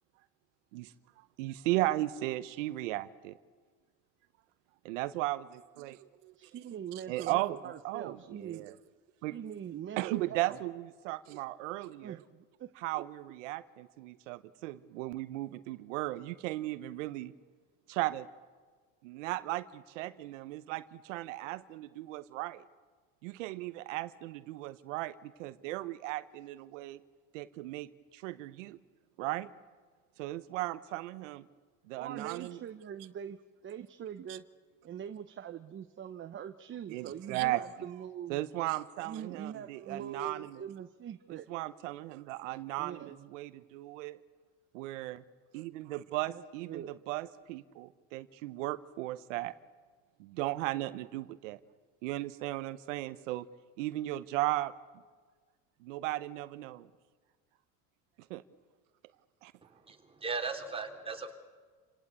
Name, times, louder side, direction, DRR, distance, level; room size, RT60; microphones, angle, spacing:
voice 1, 1.4-3.4 4.8-6.5 7.1-7.6 7.8-8.7 9.2-9.4 10.0-12.2 12.8-17.3 17.9-18.3 19.0-22.6 23.2-27.0 27.3-28.8 29.2-29.5 30.2-31.5 31.9-32.6 34.3-34.4 36.9-37.7 38.3-40.6 41.3-44.2 44.7-45.2 45.5-49.5 50.2-51.6 52.0-53.5 53.8-54.7 55.8-56.9 58.3-58.4 59.4-59.5, right 17 dB, 90° right, 14 dB, 0.9 m, -36 dB
voice 2, 6.3-8.7 9.3-10.6 12.0-13.0 32.0-33.4 33.6-34.4 34.8-38.4 39.0-41.5 42.8-43.3 46.3-46.9, right 9 dB, 30° right, 9 dB, 0.9 m, -43 dB
voice 3, 59.6-61.3, right 4 dB, 15° right, 3 dB, 3.1 m, -38 dB
28.5 x 17.5 x 8.3 m, 1.5 s
supercardioid pair, 110°, 37 cm